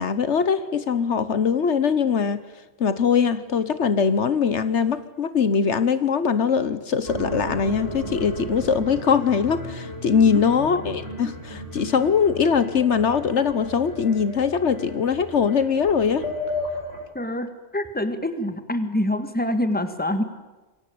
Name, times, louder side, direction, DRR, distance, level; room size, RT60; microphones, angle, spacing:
voice 1, 0.0-2.4 2.8-16.3, left 6 dB, 70° left, 13 dB, 1.4 m, -22 dB
sound 1, 7.0-17.0, equal, 90° right, 7.2 m, -34 dB
voice 2, 10.1-10.4 17.1-20.2, left 1 dB, 10° left, 9 dB, 1.8 m, -26 dB
28.0 x 22.5 x 8.7 m, 1.2 s
omnidirectional pair, 1.2 m